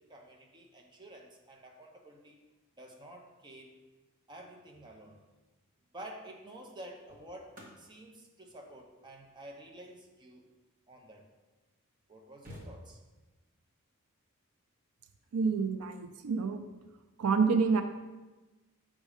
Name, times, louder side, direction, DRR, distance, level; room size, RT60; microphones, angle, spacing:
voice 1, 0.0-2.4 2.8-3.8 4.3-5.2 5.9-10.4 10.9-11.3 12.1-13.0, right 1 dB, 20° right, 1 dB, 0.7 m, -50 dB
sound 1, 5.6-5.7 6.6-11.2 11.8-11.9 12.1-13.3 15.0-15.2, equal, 40° right, 1.4 m, -55 dB
voice 2, 15.3-16.6 17.2-17.8, right 5 dB, 80° right, 8 dB, 0.4 m, -28 dB
6.2 x 3.7 x 5.0 m, 1.2 s
head